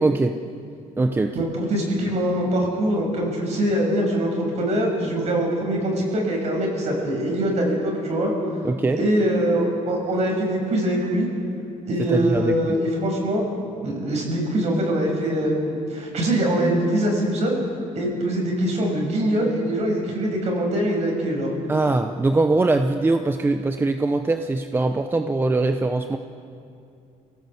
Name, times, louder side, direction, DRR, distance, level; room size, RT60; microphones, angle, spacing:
voice 1, 0.0-0.4 1.0-1.4 8.6-9.0 12.0-12.8 21.7-26.2, right 2 dB, 15° right, 7 dB, 0.7 m, -22 dB
voice 2, 1.3-4.3 4.5-8.3 9.0-11.3 11.8-13.4 13.8-17.6 17.9-21.5, right 1 dB, 55° right, 0 dB, 6.3 m, -23 dB
25.5 x 17.0 x 8.0 m, 2.6 s
cardioid pair, 140°, 14 cm